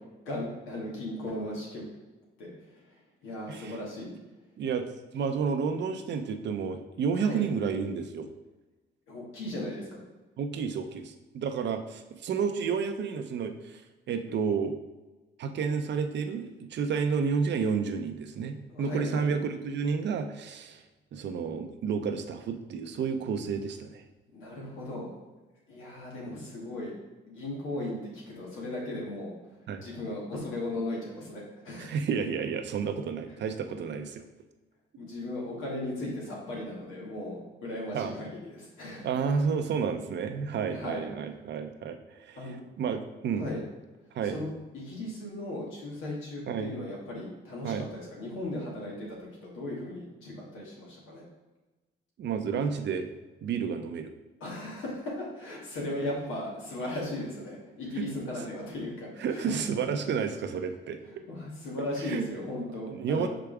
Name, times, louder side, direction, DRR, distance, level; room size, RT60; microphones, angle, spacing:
voice 1, 0.3-1.8 2.4-2.5 3.2-4.1 7.1-7.4 9.1-10.0 18.7-19.3 24.3-25.1 25.7-26.9 27.3-29.3 29.8-32.0 35.0-39.1 40.7-41.1 42.4-42.6 43.4-43.6 44.2-51.2 54.4-59.6 61.3-63.3, left 1 dB, 90° left, -3 dB, 2.1 m, -37 dB
voice 2, 3.5-3.8 4.6-4.9 5.1-8.3 10.4-13.8 14.1-14.7 15.4-20.8 21.1-24.0 29.7-29.8 31.8-34.2 37.9-38.1 39.0-43.5 44.1-44.4 46.5-46.7 47.6-47.9 52.2-53.1 53.4-54.1 58.0-58.1 59.2-61.0 62.0-62.3 62.9-63.3, right 6 dB, 60° right, 7 dB, 0.7 m, -31 dB
5.8 x 4.9 x 3.5 m, 1.1 s
cardioid pair, 90°, 20 cm